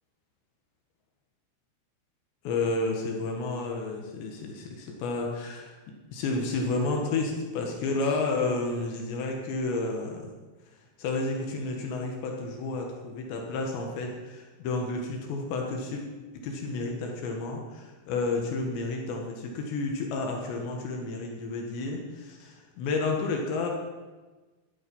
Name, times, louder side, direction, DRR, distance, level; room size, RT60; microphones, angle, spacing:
voice 1, 2.5-5.7 6.1-10.3 11.0-16.0 16.4-23.7, left 3 dB, 75° left, 1 dB, 3.7 m, -31 dB
13.0 x 12.0 x 5.5 m, 1.3 s
omnidirectional pair, 5.2 m